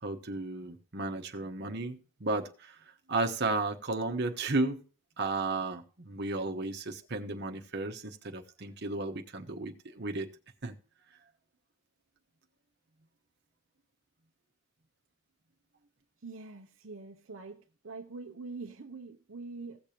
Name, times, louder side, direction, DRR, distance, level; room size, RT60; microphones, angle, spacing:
voice 1, 0.0-4.8 5.2-10.3 10.6-10.7, right 2 dB, 50° right, 1.0 m, -34 dB
voice 2, 16.2-19.8, right 3 dB, 65° right, 0.7 m, -44 dB
16.5 x 6.8 x 2.9 m
head